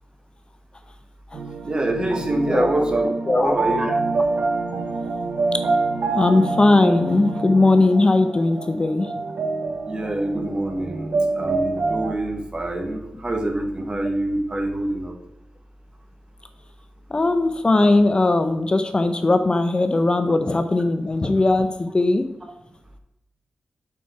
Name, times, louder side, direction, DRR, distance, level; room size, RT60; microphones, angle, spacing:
sound 1, 1.3-12.1, right 3 dB, 75° right, 0.6 m, -26 dB
voice 1, 1.6-3.1 3.4-3.9 9.8-15.1, right 1 dB, 30° right, 4 dB, 1.5 m, -25 dB
voice 2, 2.4-2.9 3.3-3.8 5.5-5.6 6.1-9.1 17.1-22.2, left 2 dB, 35° left, 8 dB, 0.6 m, -19 dB
7.3 x 4.5 x 4.7 m, 0.91 s
cardioid pair, 50°, 3 cm